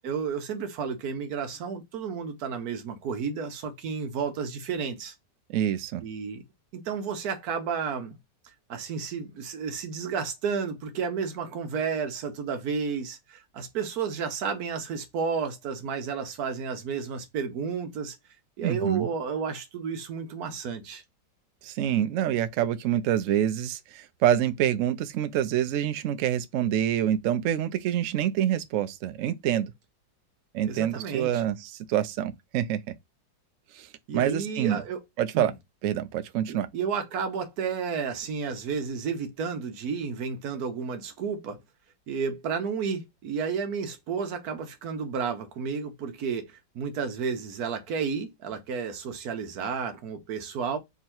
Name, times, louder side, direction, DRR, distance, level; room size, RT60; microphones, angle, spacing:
voice 1, 0.0-5.1 6.0-6.4 6.7-8.2 8.7-18.2 18.6-21.0 30.6-31.4 34.1-35.0 35.3-35.5 36.5-41.6 42.1-46.5 46.7-50.8, right 6 dB, 65° right, 1.2 m, -32 dB
voice 2, 5.5-6.0 18.6-19.1 21.6-29.7 30.5-32.9 33.7-33.9 34.1-34.8 35.2-35.5 35.8-36.7, right 11 dB, 90° right, 0.7 m, -26 dB
3.6 x 3.0 x 4.4 m
omnidirectional pair, 2.0 m